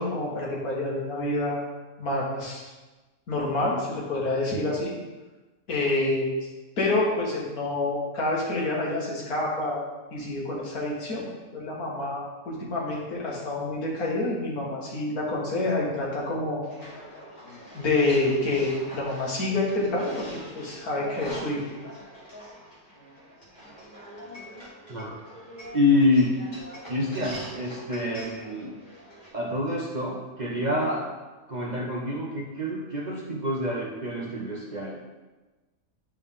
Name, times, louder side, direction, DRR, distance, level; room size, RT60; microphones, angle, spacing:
voice 1, 0.0-1.6 2.0-2.7 3.3-4.9 5.7-6.3 6.8-9.8 10.1-11.3 11.5-16.6 17.7-21.6, left 2 dB, 85° left, -4 dB, 2.1 m, -27 dB
sound 1, 16.6-29.3, equal, 30° left, 1.5 m, -44 dB
voice 2, 25.7-26.4 26.9-28.7 29.3-31.1 31.5-35.0, left 2 dB, 45° right, -2 dB, 0.6 m, -27 dB
8.4 x 4.4 x 3.6 m, 1.2 s
omnidirectional pair, 1.5 m